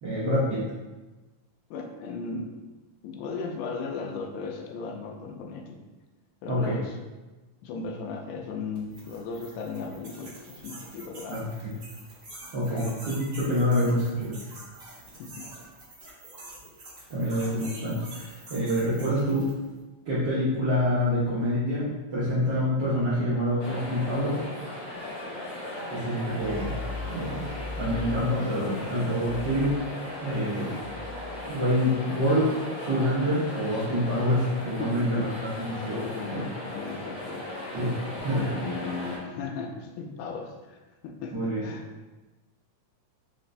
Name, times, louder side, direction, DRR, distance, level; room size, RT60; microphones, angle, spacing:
voice 1, 0.0-0.6 6.5-6.8 11.3-11.7 12.5-14.4 17.1-19.5 20.0-24.4 25.9-26.7 27.0-27.5 27.7-29.8 30.2-30.7 31.4-32.5 32.8-36.0 36.3-36.4 37.7-38.5 41.3-41.6, equal, 80° right, -11 dB, 0.9 m, -26 dB
voice 2, 1.7-2.5 3.0-5.8 6.4-7.0 7.6-11.6 11.9-12.0 12.7-13.0 13.5-13.6 15.2-15.5 34.8-35.3 35.9-37.5 38.3-41.8, left 4 dB, 90° left, 2 dB, 2.1 m, -36 dB
sound 1, 8.8-19.7, right 2 dB, 40° right, 1.4 m, -46 dB
sound 2, 23.6-39.2, left 1 dB, 70° left, 2.4 m, -37 dB
sound 3, 26.4-29.7 30.3-31.6, left 4 dB, 65° right, 1.8 m, -39 dB
5.0 x 2.5 x 3.2 m, 1.2 s
omnidirectional pair, 3.5 m